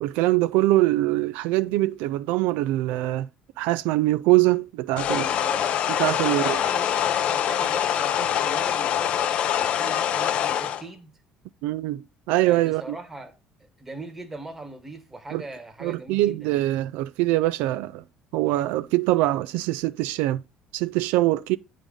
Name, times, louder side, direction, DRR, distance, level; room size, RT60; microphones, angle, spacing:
voice 1, 0.0-3.3 3.6-5.3 6.0-6.6 11.6-13.0 15.3-15.4 15.8-18.0 18.3-20.4 20.7-21.6, right 17 dB, 80° right, 0.3 m, -23 dB
sound 1, 5.0-10.8, left 9 dB, 40° left, 0.6 m, -24 dB
voice 2, 5.1-5.8 6.2-11.1 12.4-16.6, right 2 dB, 10° right, 1.2 m, -40 dB
9.0 x 3.8 x 5.0 m
cardioid pair, 175°, 3 cm